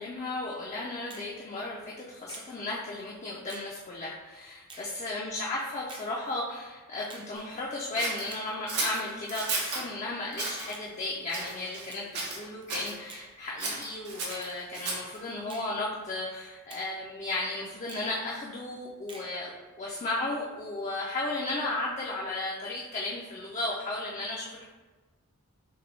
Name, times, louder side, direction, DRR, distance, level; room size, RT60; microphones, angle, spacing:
voice 1, 0.0-19.5 19.8-24.6, left 2 dB, 30° left, -4 dB, 0.4 m, -35 dB
Finger snapping, 1.1-1.3 2.3-2.5 3.5-3.7 4.7-4.9 5.9-6.1 7.1-7.3 8.3-8.5 9.5-9.7 10.7-10.9 11.9-12.1 13.1-13.3 14.3-14.5 15.5-15.7 16.7-16.9 17.9-18.1 19.1-19.3, right 3 dB, 20° right, 0.5 m, -47 dB
Scissors, 8.0-9.9 10.3-10.7 11.3-11.9 12.1-12.9 13.6-15.2, right 3 dB, 90° right, 1.1 m, -34 dB
5.8 x 2.2 x 3.1 m, 1.3 s
head